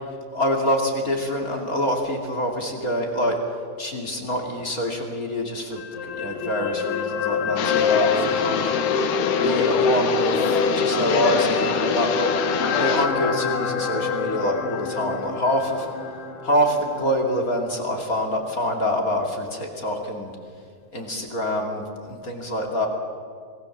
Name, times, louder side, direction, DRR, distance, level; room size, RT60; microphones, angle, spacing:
voice 1, 0.3-3.4 3.8-9.0 9.4-12.3 12.7-15.9 16.4-20.3 20.9-22.9, equal, 25° left, 1 dB, 2.6 m, -26 dB
sound 1, 5.7-18.0 18.4-18.5, left 5 dB, 60° left, 1.7 m, -26 dB
sound 2, 7.6-13.1, left 7 dB, 85° left, 3.2 m, -25 dB
26.5 x 19.0 x 7.3 m, 2.1 s
omnidirectional pair, 4.1 m